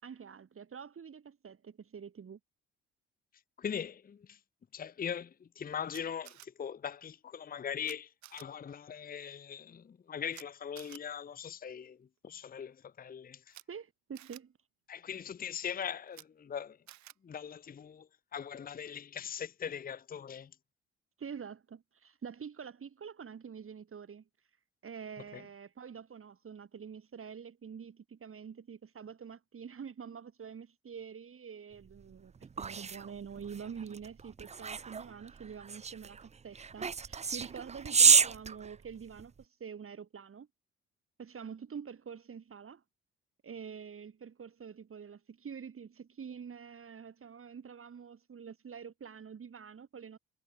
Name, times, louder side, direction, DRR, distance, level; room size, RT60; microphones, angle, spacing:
voice 1, 0.0-2.4 13.7-14.5 21.2-24.2 24.8-40.5 41.2-42.8 43.4-50.2, right 7 dB, 50° right, 6.8 m, -46 dB
voice 2, 3.6-4.4 4.7-12.0 12.2-13.5 14.9-16.8 17.2-18.1 18.3-20.5 25.3-25.4, left 8 dB, 30° left, 0.7 m, -40 dB
Camera, 5.9-6.5 7.8-7.9 8.2-8.4 10.3-10.4 10.7-11.0 13.5-13.6 14.1-14.4 16.1-16.2 16.9-17.1, right 16 dB, 75° right, 2.8 m, -51 dB
sound 1, 31.9-39.4, right 5 dB, 25° right, 0.6 m, -30 dB
hypercardioid pair, 55°, 29 cm